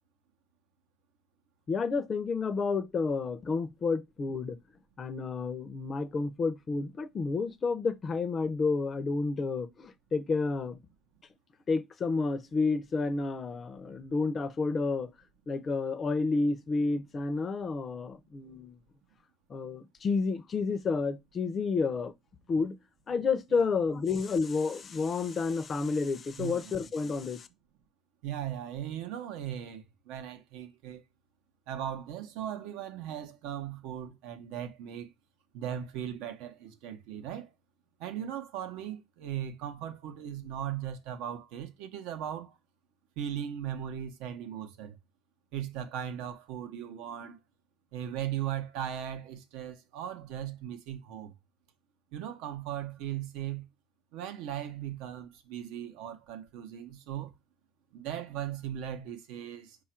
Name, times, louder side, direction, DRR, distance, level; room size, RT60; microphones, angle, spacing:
voice 1, 1.7-4.6 5.0-10.8 11.7-15.1 15.5-18.8 19.5-22.1 22.5-22.7 23.1-27.5, left 4 dB, 25° left, 0.4 m, -30 dB
voice 2, 26.4-26.7 28.2-31.0 31.7-35.1 35.5-37.5 38.0-42.6 43.2-45.0 45.5-47.4 47.9-51.4 52.1-53.7 54.1-57.3 57.9-59.8, right 10 dB, 85° right, 0.7 m, -38 dB
4.9 x 2.4 x 4.3 m
cardioid pair, 150°, 0 cm